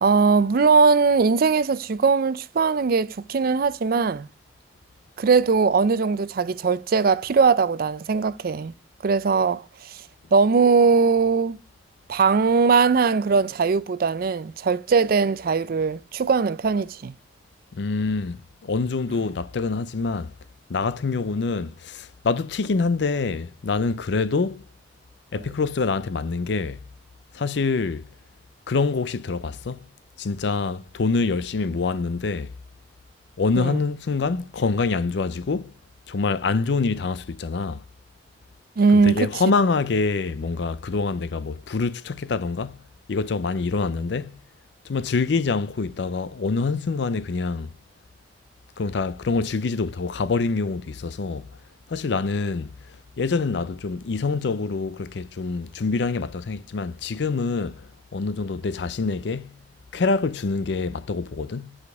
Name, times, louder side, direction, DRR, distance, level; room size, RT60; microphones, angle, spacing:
voice 1, 0.0-4.3 5.2-8.7 9.0-10.0 10.3-11.6 12.1-17.1 33.6-33.8 38.8-39.3, right 5 dB, 55° right, 0.4 m, -20 dB
voice 2, 17.7-20.3 20.7-24.6 25.3-26.8 27.3-28.1 28.7-29.9 30.2-32.5 33.4-35.7 36.1-37.8 38.9-42.8 43.1-44.4 44.8-47.7 48.8-51.5 51.9-52.8 53.2-59.6 59.9-61.8, left 4 dB, 70° left, 0.5 m, -25 dB
8.3 x 5.0 x 4.6 m
head